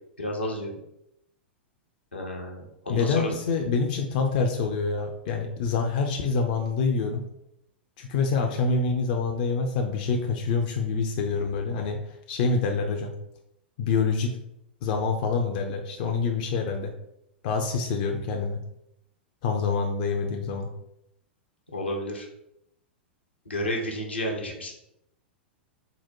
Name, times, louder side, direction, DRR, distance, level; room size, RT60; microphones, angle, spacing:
voice 1, 0.2-0.7 2.1-3.3 21.7-22.3 23.5-24.7, left 1 dB, 85° left, 0 dB, 0.8 m, -31 dB
voice 2, 2.9-7.2 8.0-13.1 13.8-14.3 14.8-16.9 17.4-18.6 19.4-20.7, left 4 dB, 50° left, 3 dB, 0.5 m, -26 dB
3.9 x 2.1 x 4.4 m, 0.82 s
figure-of-eight pair, 95°, 6 cm